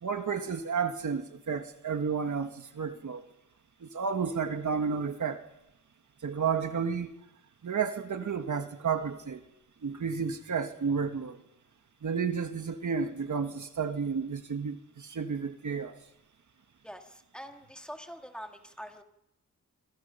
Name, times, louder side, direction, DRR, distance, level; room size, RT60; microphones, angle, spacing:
voice 1, 0.0-3.3 3.8-5.5 6.2-7.1 7.6-9.4 9.8-11.4 12.0-16.0, right 6 dB, 60° right, 1.8 m, -31 dB
voice 2, 16.8-19.0, equal, 5° left, 2.1 m, -45 dB
27.5 x 26.5 x 5.8 m
wide cardioid pair, 150°, 34 cm